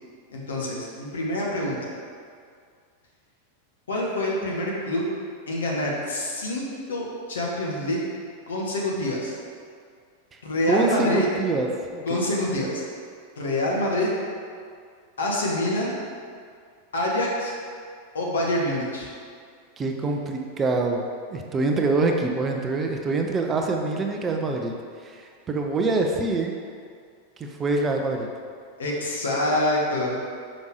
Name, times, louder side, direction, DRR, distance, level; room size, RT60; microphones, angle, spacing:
voice 1, 0.3-1.9 3.9-5.0 5.5-8.0 8.5-9.4 10.4-11.3 12.1-12.8 13.4-14.1 15.2-15.9 16.9-17.5 18.1-19.1 28.8-30.2, left 1 dB, 65° left, -3 dB, 1.2 m, -26 dB
voice 2, 10.7-12.2 19.8-21.0 21.3-24.7 25.0-25.2 25.5-26.5 27.4-28.3, right 3 dB, 20° right, 2 dB, 0.5 m, -25 dB
6.3 x 5.1 x 3.1 m, 2.2 s
figure-of-eight pair, 90°, 0 cm